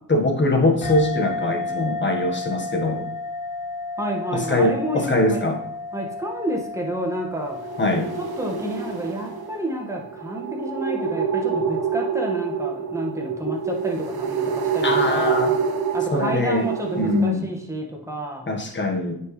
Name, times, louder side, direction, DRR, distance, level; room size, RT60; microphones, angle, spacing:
voice 1, 0.1-3.1 4.3-5.6 7.8-8.1 14.8-15.5 16.1-16.7 17.0-17.5 18.5-19.2, left 2 dB, 30° left, 3 dB, 1.6 m, -22 dB
sound 1, 0.8-9.9, left 3 dB, 75° left, 1.4 m, -33 dB
voice 2, 4.0-5.4 5.9-7.7 8.2-15.4 15.9-18.5, right 1 dB, 10° right, -1 dB, 1.8 m, -30 dB
sound 2, 7.4-17.3, right 6 dB, 80° right, 1.3 m, -27 dB
8.9 x 6.2 x 3.3 m, 0.73 s
cardioid pair, 80°, 37 cm